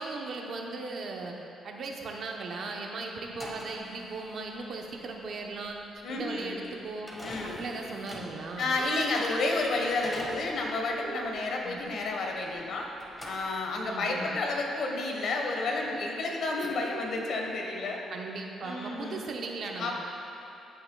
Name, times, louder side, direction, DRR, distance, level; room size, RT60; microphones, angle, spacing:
voice 1, 0.0-1.4 1.6-5.8 6.1-7.1 7.4-8.7 11.6-11.8 13.8-14.3 18.1-19.9, right 3 dB, 60° right, 1 dB, 0.8 m, -37 dB
sound 1, 3.2-12.7 13.0-14.0, equal, 10° left, 1.5 m, -45 dB
voice 2, 6.0-6.5 7.2-7.6 8.6-12.9 13.2-18.0 18.6-19.2 19.8-19.9, left 2 dB, 65° left, 1 dB, 1.2 m, -31 dB
sound 2, 7.1-7.9 8.6-9.4 10.9-11.5, right 3 dB, 80° right, 1.2 m, -42 dB
14.5 x 5.7 x 2.3 m, 2.8 s
cardioid pair, 90°, 0 cm